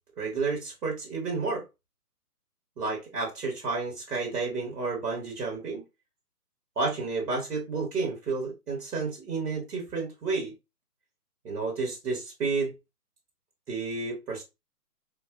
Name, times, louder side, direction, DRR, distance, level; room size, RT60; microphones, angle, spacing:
voice 1, 0.2-1.6 2.8-5.8 6.8-10.5 11.4-12.7 13.7-14.4, right 4 dB, 70° right, 1.4 m, -31 dB
4.1 x 2.2 x 2.3 m
figure-of-eight pair, 145°, 47 cm